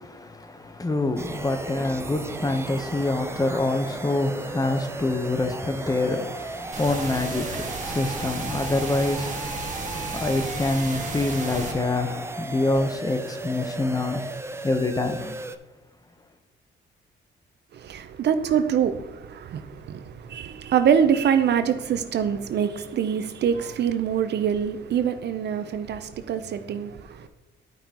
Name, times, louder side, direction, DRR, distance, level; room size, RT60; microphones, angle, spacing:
voice 1, 0.2-14.2 14.6-15.3, left 2 dB, 20° left, 0.9 m, -26 dB
sound 1, 1.2-15.6, right 2 dB, 15° right, 0.4 m, -36 dB
sound 2, 6.7-11.7, right 3 dB, 40° right, 1.5 m, -33 dB
voice 2, 17.7-27.3, right 8 dB, 60° right, 0.6 m, -25 dB
12.0 x 5.4 x 2.9 m
cardioid pair, 90°, 20 cm